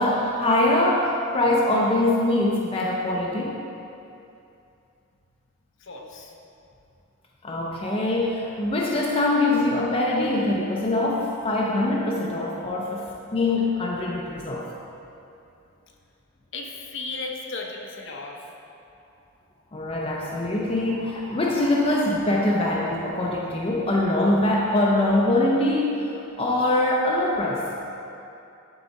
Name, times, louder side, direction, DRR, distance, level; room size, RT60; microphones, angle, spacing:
voice 1, 0.0-3.6 7.4-14.7 19.7-26.1 26.4-27.7, left 1 dB, 25° left, -3 dB, 0.5 m, -23 dB
voice 2, 5.8-6.3 16.5-18.5 26.7-26.8, left 3 dB, 60° left, 0 dB, 0.8 m, -35 dB
11.5 x 4.0 x 4.0 m, 2.7 s
head